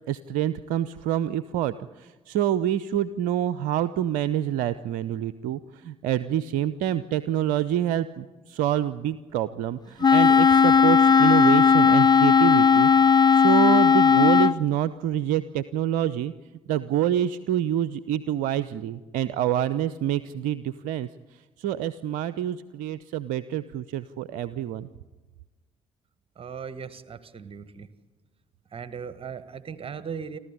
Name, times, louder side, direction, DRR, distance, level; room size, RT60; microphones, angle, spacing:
voice 1, 0.1-12.9 13.3-16.3 16.7-21.1 21.6-24.9, right 11 dB, 65° right, 16 dB, 0.6 m, -27 dB
Wind instrument woodwind instrument, 10.0-14.6, left 6 dB, 25° left, 0.7 m, -17 dB
voice 2, 26.4-27.9 28.7-30.4, right 6 dB, 35° right, 14 dB, 1.7 m, -38 dB
29.0 x 13.0 x 10.0 m, 1.3 s
figure-of-eight pair, 45°, 15 cm